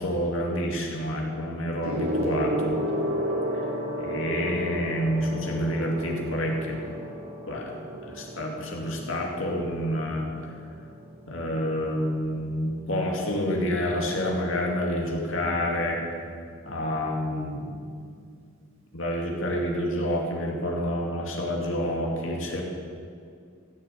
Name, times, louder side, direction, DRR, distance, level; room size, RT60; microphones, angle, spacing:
voice 1, 0.0-2.8 4.0-6.8 7.5-7.7 8.0-10.3 11.3-16.0 16.6-17.7 18.9-22.6, equal, 70° left, -1 dB, 2.4 m, -28 dB
Gong, 1.8-11.6 12.5-12.8, equal, 75° right, 2.7 m, -33 dB
15.0 x 7.1 x 8.4 m, 2.3 s
head